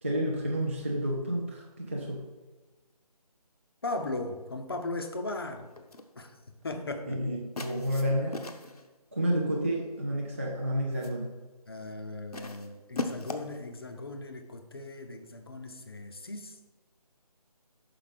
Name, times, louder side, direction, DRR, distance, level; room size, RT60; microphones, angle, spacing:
voice 1, 0.0-2.2 7.0-8.5 9.1-11.3, equal, 20° right, -2 dB, 0.4 m, -30 dB
voice 2, 3.8-5.7 6.2-6.4 6.6-7.2 11.7-16.6, left 2 dB, 35° left, 6 dB, 0.6 m, -37 dB
sound 1, 5.8-6.1 7.6-8.9 9.9-10.3 10.7-11.2 12.3-13.6, left 3 dB, 70° left, 0.8 m, -39 dB
5.9 x 5.0 x 4.9 m, 1.3 s
figure-of-eight pair, 160°, 20 cm